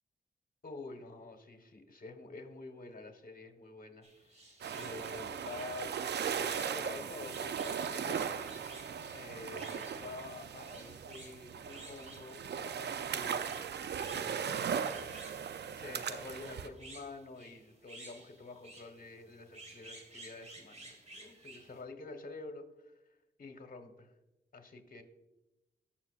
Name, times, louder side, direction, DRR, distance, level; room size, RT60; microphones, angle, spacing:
voice 1, 0.6-4.1 4.7-6.0 6.4-8.4 9.1-13.7 14.1-14.9 15.7-22.9 23.4-24.1 24.5-25.0, left 3 dB, 50° left, 6 dB, 1.3 m, -48 dB
sound 1, 4.0-21.8, right 2 dB, 35° right, 1.9 m, -55 dB
sound 2, 4.6-16.7, right 7 dB, 65° right, 0.5 m, -38 dB
14.5 x 6.1 x 2.5 m, 0.98 s
cardioid pair, 50°, 19 cm